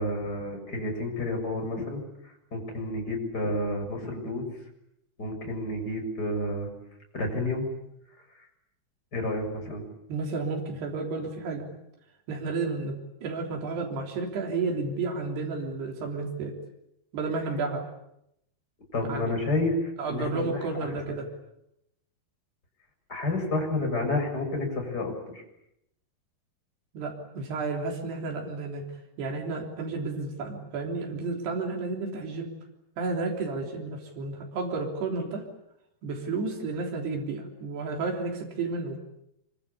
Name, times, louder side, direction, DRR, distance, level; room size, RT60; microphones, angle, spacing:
voice 1, 0.0-4.5 5.2-6.7 7.1-7.7 9.1-9.8 18.9-20.9 23.1-25.4, left 2 dB, 25° left, 2 dB, 7.4 m, -30 dB
voice 2, 10.1-11.7 12.3-16.6 17.1-17.8 19.1-19.3 20.0-21.3 26.9-28.9 29.2-32.5 33.0-35.4 36.0-39.0, right 3 dB, 85° right, 1 dB, 5.5 m, -32 dB
26.5 x 24.5 x 8.5 m, 0.80 s
omnidirectional pair, 4.6 m